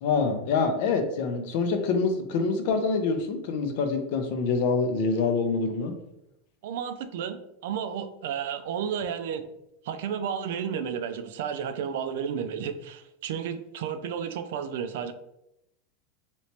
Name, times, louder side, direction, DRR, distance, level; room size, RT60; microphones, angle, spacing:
voice 1, 0.0-5.9, left 4 dB, 60° left, 6 dB, 0.5 m, -26 dB
voice 2, 6.6-9.4 9.8-15.1, right 8 dB, 75° right, 9 dB, 0.3 m, -32 dB
3.2 x 2.9 x 2.8 m, 0.83 s
supercardioid pair, 155°, 0 cm